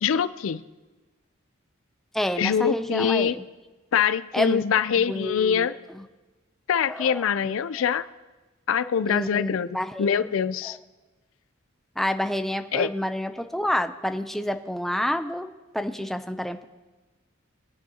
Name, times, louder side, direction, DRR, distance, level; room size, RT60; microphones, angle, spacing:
voice 1, 0.0-0.6 2.4-3.3 3.9-5.7 6.7-8.1 8.7-10.8 12.7-12.9, left 7 dB, 80° left, 14 dB, 0.4 m, -24 dB
voice 2, 2.1-3.4 4.3-4.6 5.0-5.7 6.9-7.2 9.1-10.4 10.6-10.8 12.0-15.5 15.7-16.6, equal, ahead, 7 dB, 0.4 m, -28 dB
21.0 x 9.7 x 2.8 m, 1.2 s
head